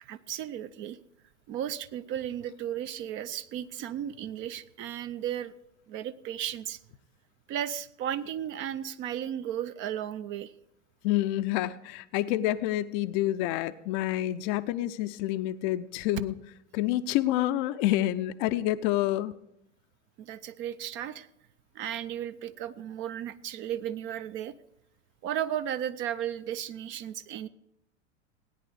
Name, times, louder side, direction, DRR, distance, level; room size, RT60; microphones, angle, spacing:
voice 1, 0.0-1.0 1.5-5.5 5.9-6.8 7.5-10.5 20.2-21.3 21.7-24.5 25.2-27.5, right 10 dB, 35° right, 13 dB, 0.6 m, -35 dB
voice 2, 11.0-16.3 16.7-19.3, left 14 dB, 40° left, 13 dB, 0.6 m, -28 dB
17.0 x 10.0 x 4.9 m, 0.78 s
figure-of-eight pair, 80°, 35 cm